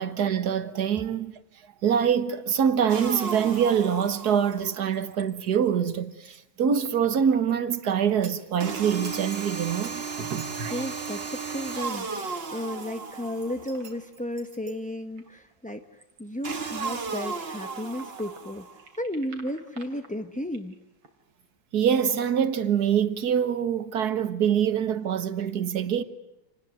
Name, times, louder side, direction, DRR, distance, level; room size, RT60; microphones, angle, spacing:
voice 1, 0.0-1.3 1.8-10.8 21.7-26.0, right 8 dB, 55° right, 1.8 m, -25 dB
sound 1, 2.4-4.1 4.5-5.5 5.8-8.6 8.9-12.9 13.3-18.5 18.8-21.1 21.4-21.5, right 4 dB, 80° right, 3.8 m, -51 dB
sound 2, 2.9-4.9 8.6-13.9 16.4-18.8, right 4 dB, 35° right, 1.4 m, -35 dB
voice 2, 10.7-15.9 16.2-18.7 19.0-20.8, left 1 dB, 10° left, 0.5 m, -34 dB
28.0 x 20.5 x 9.2 m
omnidirectional pair, 2.1 m